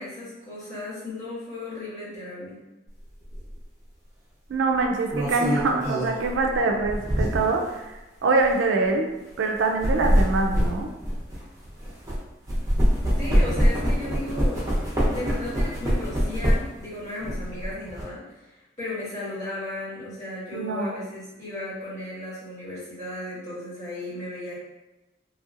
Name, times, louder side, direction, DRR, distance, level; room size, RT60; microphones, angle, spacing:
voice 1, 0.0-2.6 13.2-14.6 15.1-24.6, left 2 dB, 40° left, -10 dB, 1.5 m, -35 dB
sound 1, 3.3-3.5 4.8-7.7 8.3-8.5 9.6-12.2 12.5-16.8 17.2-18.0, equal, 15° right, 0.8 m, -24 dB
voice 2, 4.5-7.9 8.2-9.1 9.4-10.9 20.5-20.9, right 3 dB, 80° right, 3 dB, 0.4 m, -24 dB
3.1 x 2.7 x 2.4 m, 1.0 s
head